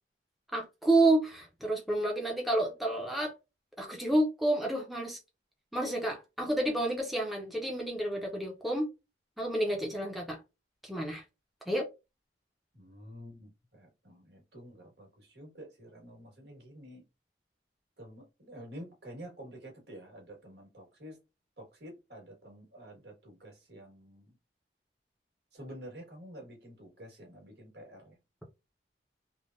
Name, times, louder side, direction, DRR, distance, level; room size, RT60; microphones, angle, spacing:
voice 1, 0.5-3.3 3.8-5.2 5.7-8.9 9.4-10.4 10.8-11.2 11.7-11.9, right 1 dB, ahead, 0.6 m, -29 dB
voice 2, 12.7-17.0 18.0-21.2 21.6-24.4 25.5-28.2, equal, 70° right, 1.4 m, -49 dB
3.3 x 2.1 x 2.5 m
head